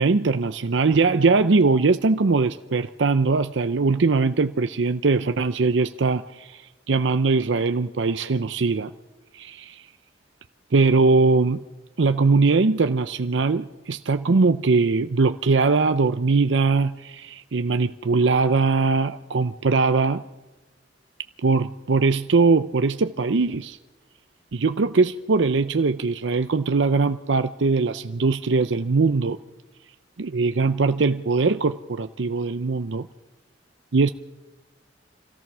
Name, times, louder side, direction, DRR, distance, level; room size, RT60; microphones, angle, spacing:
voice 1, 0.0-6.6 6.9-8.9 9.3-9.8 10.7-11.6 12.0-20.2 21.4-23.8 24.5-29.4 30.2-33.1 33.9-34.1, right 4 dB, 75° right, 0.6 m, -21 dB
27.0 x 17.5 x 6.2 m
head